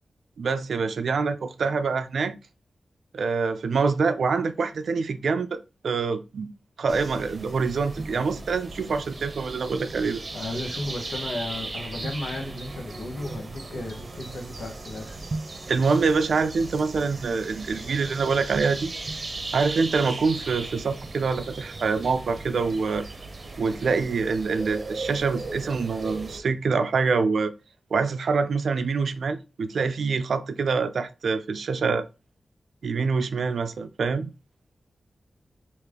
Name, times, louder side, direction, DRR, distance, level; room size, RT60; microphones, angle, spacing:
voice 1, 0.4-2.3 3.1-6.5 6.8-10.2 15.7-18.9 19.5-23.1 23.6-27.5 27.9-32.1 32.8-34.3, right 4 dB, 85° right, 0.4 m, -25 dB
sound 1, 6.9-26.4, right 3 dB, 50° right, 0.7 m, -37 dB
voice 2, 10.3-15.2, left 2 dB, 90° left, 0.8 m, -34 dB
3.3 x 2.6 x 3.6 m
wide cardioid pair, 75°, 0 cm